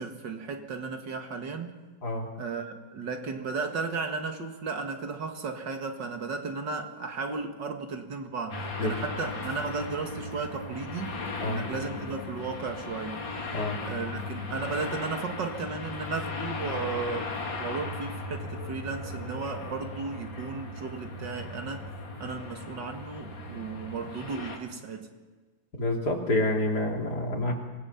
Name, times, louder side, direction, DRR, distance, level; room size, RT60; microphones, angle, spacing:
voice 1, 0.0-1.8 2.4-13.2 13.8-17.3 17.6-21.9 22.2-25.1, right 4 dB, 70° right, 5 dB, 2.4 m, -35 dB
sound 1, 8.5-24.6, left 3 dB, 85° left, 3.0 m, -37 dB
voice 2, 25.8-27.5, left 2 dB, 55° left, 0 dB, 3.6 m, -28 dB
26.5 x 19.0 x 5.8 m, 1.3 s
omnidirectional pair, 2.0 m